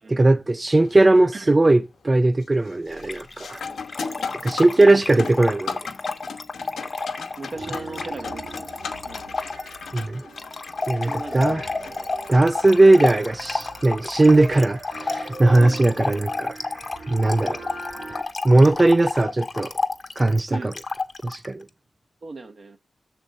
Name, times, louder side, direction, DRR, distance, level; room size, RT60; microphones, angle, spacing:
voice 1, 0.1-3.7 4.4-5.8 9.9-10.3 10.9-11.7 12.3-16.6 17.1-17.6 18.4-19.7 20.2-20.7 21.2-21.7, right 2 dB, 35° right, 0.3 m, -18 dB
sound 1, 0.8-1.2 1.6-2.1 2.4-15.9 18.4-18.5 19.4-19.6, left 5 dB, 90° left, 0.8 m, -38 dB
Trickle dribble / Fill (with liquid), 3.0-21.5, left 3 dB, 50° left, 0.8 m, -31 dB
voice 2, 3.6-4.4 4.8-5.2 6.8-6.9 7.4-8.7 9.0-9.4 11.0-11.6 15.6-16.3 20.5-20.7 22.2-22.8, right 3 dB, 60° right, 0.8 m, -38 dB
sound 2, 7.5-18.2, right 2 dB, 85° right, 2.7 m, -40 dB
6.3 x 4.3 x 6.4 m
cardioid pair, 45°, 0 cm